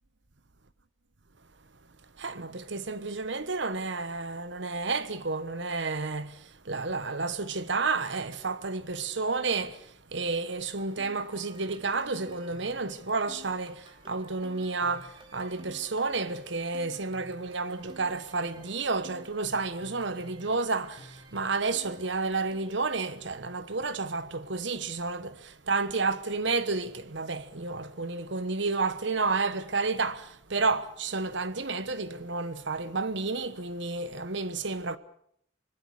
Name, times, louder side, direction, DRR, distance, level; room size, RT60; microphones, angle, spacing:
voice 1, 2.2-35.0, right 3 dB, 65° right, 1.2 m, -31 dB
sound 1, 10.6-22.9, right 1 dB, 25° right, 2.9 m, -53 dB
25.5 x 20.5 x 6.6 m
head